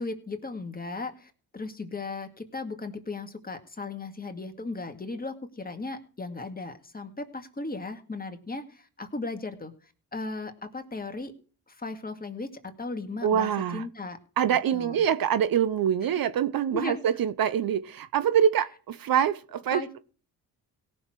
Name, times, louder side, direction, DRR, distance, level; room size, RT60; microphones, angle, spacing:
voice 1, 0.0-9.7 10.1-11.3 11.7-14.2 14.7-15.0 16.7-17.0 19.7-20.0, left 3 dB, 20° left, 2.1 m, -36 dB
voice 2, 13.2-13.9 14.4-19.8, right 9 dB, 60° right, 0.8 m, -25 dB
17.5 x 6.4 x 4.6 m
cardioid pair, 65°, 39 cm